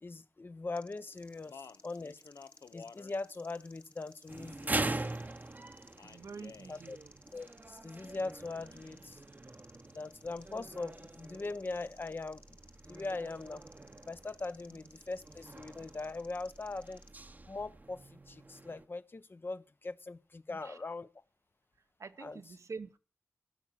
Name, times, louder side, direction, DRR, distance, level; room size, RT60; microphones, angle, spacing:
voice 1, 0.0-2.2 2.7-5.1 6.7-7.0 7.3-9.2 9.9-12.6 12.9-13.6 14.0-17.0 17.5-21.1 22.2-22.4, left 3 dB, 40° left, 0.7 m, -41 dB
sound 1, 0.8-17.1, left 1 dB, 20° left, 0.9 m, -60 dB
Speech, 1.1-5.2 6.0-6.8, left 5 dB, 80° left, 0.6 m, -54 dB
sound 2, 4.3-18.9, right 2 dB, 35° right, 0.8 m, -43 dB
voice 2, 6.0-7.2 20.5-20.8 22.0-23.0, right 4 dB, 70° right, 0.9 m, -47 dB
15.0 x 6.0 x 7.3 m
wide cardioid pair, 65°, 5 cm